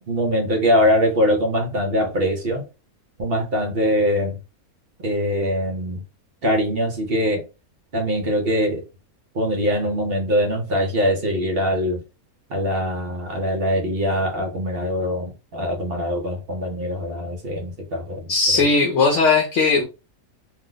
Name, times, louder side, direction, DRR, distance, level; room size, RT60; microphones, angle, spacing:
voice 1, 0.0-2.6 3.2-4.4 5.0-6.0 6.4-7.4 7.9-8.8 9.3-12.0 12.5-18.3, equal, 50° right, 0.8 m, -22 dB
voice 2, 18.3-19.8, left 4 dB, 60° left, 0.9 m, -18 dB
2.6 x 2.1 x 3.7 m
omnidirectional pair, 1.5 m